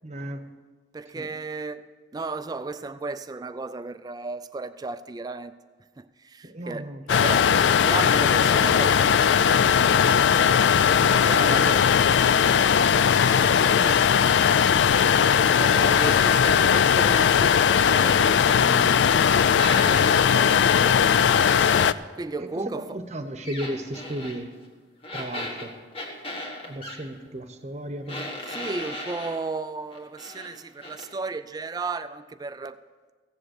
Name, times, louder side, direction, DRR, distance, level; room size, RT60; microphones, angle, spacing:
voice 1, 0.0-0.4 1.1-1.3 6.4-7.0 22.4-22.5 22.7-24.5 25.1-25.7 26.6-28.2, right 1 dB, 40° right, 0.9 m, -34 dB
voice 2, 0.9-1.8 2.1-5.5 6.0-10.0 10.8-14.0 15.5-21.1 22.2-23.0 28.5-32.8, right 3 dB, 20° right, 0.3 m, -35 dB
sound 1, 7.1-21.9, left 7 dB, 75° left, 0.4 m, -19 dB
sound 2, 15.7-16.5 19.6-20.4 23.4-24.4 25.0-27.0 28.1-29.4 29.9-30.5 30.8-31.1, left 1 dB, 30° left, 1.6 m, -36 dB
15.5 x 7.7 x 6.5 m
head